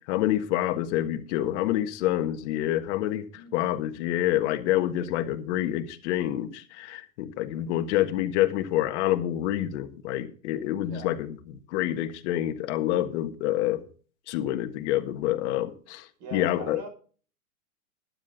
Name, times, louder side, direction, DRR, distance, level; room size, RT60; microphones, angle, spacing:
voice 1, 0.1-3.2 3.5-11.4 11.7-13.8 14.3-16.1 16.3-16.8, left 13 dB, 50° left, 9 dB, 1.6 m, -27 dB
voice 2, 16.2-16.9, right 3 dB, 40° right, 4 dB, 6.0 m, -40 dB
12.5 x 9.9 x 4.0 m, 0.41 s
hypercardioid pair, 125°, 44 cm